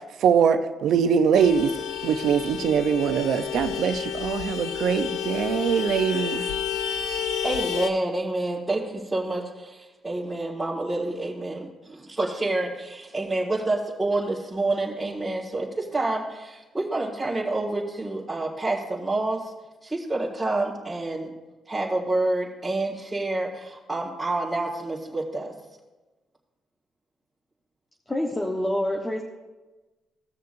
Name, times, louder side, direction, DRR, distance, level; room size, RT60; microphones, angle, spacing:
voice 1, 0.2-1.7 2.0-6.4, right 7 dB, 75° right, 8 dB, 0.7 m, -22 dB
Vehicle horn car horn honking, 1.3-7.9, left 8 dB, 85° left, 0.6 m, -30 dB
voice 2, 7.4-19.5 19.8-21.3 21.7-25.5, right 2 dB, 10° right, -9 dB, 2.0 m, -28 dB
voice 3, 28.1-29.2, left 1 dB, 15° left, -2 dB, 1.2 m, -26 dB
17.5 x 6.7 x 2.7 m, 1.2 s
cardioid pair, 90°, 0 cm